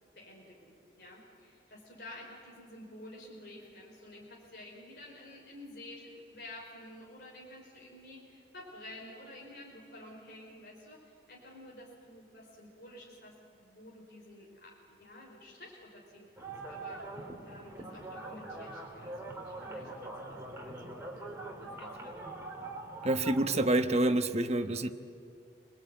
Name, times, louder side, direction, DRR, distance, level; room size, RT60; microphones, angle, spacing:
voice 1, 0.1-17.0 17.5-20.8 21.2-21.3 21.6-22.4, left 1 dB, 65° left, -2 dB, 4.8 m, -51 dB
sound 1, 16.4-23.7, right 2 dB, 15° right, 3.3 m, -43 dB
voice 2, 23.0-24.9, right 1 dB, 40° right, 8 dB, 1.2 m, -27 dB
28.0 x 20.5 x 9.2 m, 2.5 s
head